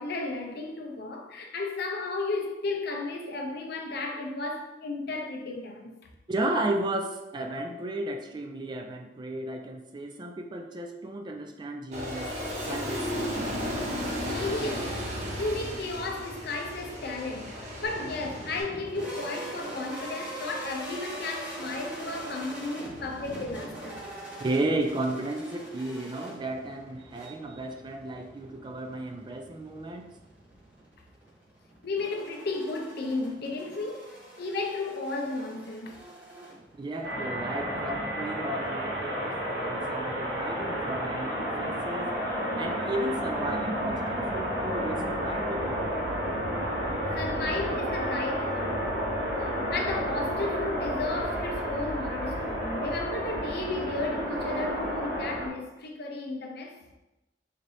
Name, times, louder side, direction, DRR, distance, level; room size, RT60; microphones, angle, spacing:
voice 1, 0.0-5.9 14.3-15.0 15.4-24.0 31.8-36.0 47.2-49.0 49.4-56.8, left 3 dB, 60° left, 0.6 m, -34 dB
voice 2, 6.3-12.3 12.6-13.5 24.4-30.1 36.7-42.2 42.6-46.0, right 2 dB, 25° right, 0.3 m, -34 dB
Aircraft, 11.9-18.6, equal, 40° right, 0.9 m, -34 dB
sound 1, 17.8-37.0, right 1 dB, 10° right, 1.3 m, -43 dB
sound 2, 37.0-55.5, equal, 75° right, 1.0 m, -31 dB
4.0 x 3.2 x 2.7 m
head